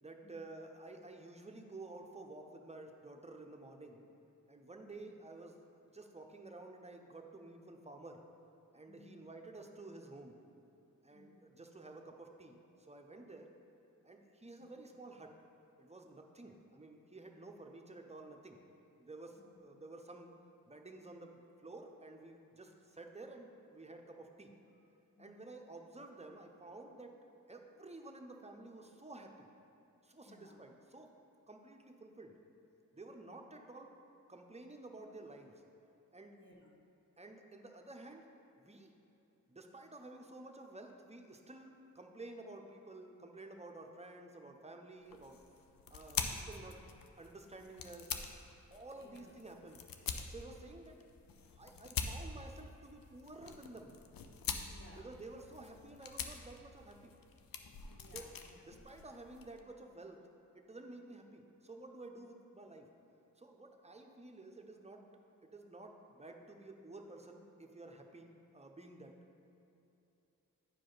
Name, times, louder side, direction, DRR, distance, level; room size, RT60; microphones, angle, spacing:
voice 1, 0.0-4.1 4.5-5.6 5.9-8.2 8.7-10.4 11.0-13.5 14.0-15.3 15.8-18.6 19.0-20.3 20.7-24.5 25.2-27.2 27.5-29.5 30.0-31.1 31.5-32.4 32.9-34.0 34.3-35.6 36.1-36.4 37.2-38.3 38.6-38.9 39.5-45.4 45.9-46.9 47.2-48.1 48.7-49.8 50.3-51.0 51.5-53.9 55.0-57.1 58.1-58.3 58.7-60.2 60.5-62.9 63.4-65.0 65.4-68.3 68.5-69.1, right 2 dB, 20° right, 3 dB, 0.9 m, -52 dB
voice 2, 4.9-5.2 8.9-9.3 11.1-11.4 14.6-14.7 16.4-16.6 19.3-19.6 25.1-25.4 30.2-30.6 36.4-36.7 49.0-49.3 54.7-55.1 58.0-58.6, left 2 dB, 35° left, -1 dB, 1.5 m, -61 dB
sound 1, 45.1-59.6, left 6 dB, 75° left, 0.6 m, -45 dB
10.0 x 4.9 x 4.0 m, 2.9 s
cardioid pair, 55°, 34 cm